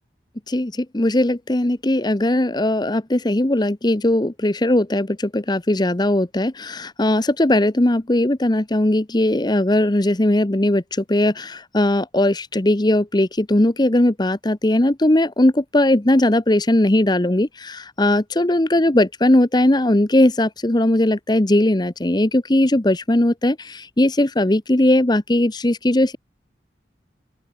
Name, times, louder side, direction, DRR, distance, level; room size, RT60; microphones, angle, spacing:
voice 1, 0.5-26.2, left 1 dB, 25° left, 0.9 m, -19 dB
open air
head